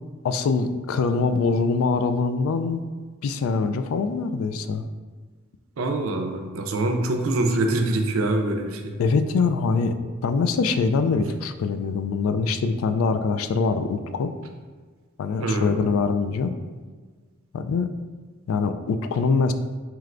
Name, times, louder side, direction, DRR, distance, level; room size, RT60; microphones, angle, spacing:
voice 1, 0.2-2.8 3.2-4.8 9.0-10.0 10.2-14.3 15.2-16.5 17.5-17.9 18.5-19.5, left 4 dB, 80° left, 11 dB, 0.3 m, -23 dB
voice 2, 5.8-8.9 15.4-15.8, right 2 dB, 75° right, 4 dB, 0.5 m, -24 dB
4.6 x 3.2 x 2.5 m, 1.5 s
head